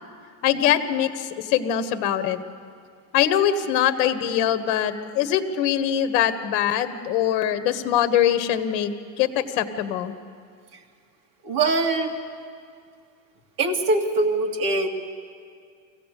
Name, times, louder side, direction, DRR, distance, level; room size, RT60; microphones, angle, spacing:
voice 1, 0.4-2.4 3.1-8.9 9.2-10.1, left 10 dB, 60° left, 11 dB, 1.6 m, -23 dB
voice 2, 11.4-12.1 13.6-14.9, right 2 dB, 40° right, 1 dB, 2.4 m, -22 dB
24.5 x 16.5 x 8.4 m, 2.2 s
supercardioid pair, 145°, 50 cm